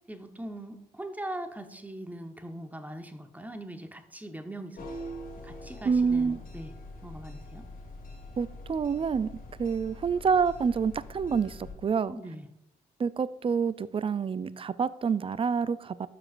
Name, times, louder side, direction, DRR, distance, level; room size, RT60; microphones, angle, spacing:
voice 1, 0.1-4.9 5.4-6.7 7.0-7.7 12.1-12.5, right 1 dB, 10° right, 1.0 m, -41 dB
sound 1, 4.8-11.7, left 1 dB, 50° left, 1.8 m, -44 dB
voice 2, 5.8-6.4 8.4-9.3 9.6-12.2 13.0-16.1, right 6 dB, 30° right, 0.4 m, -27 dB
12.5 x 4.9 x 2.5 m
hypercardioid pair, 45°, 19 cm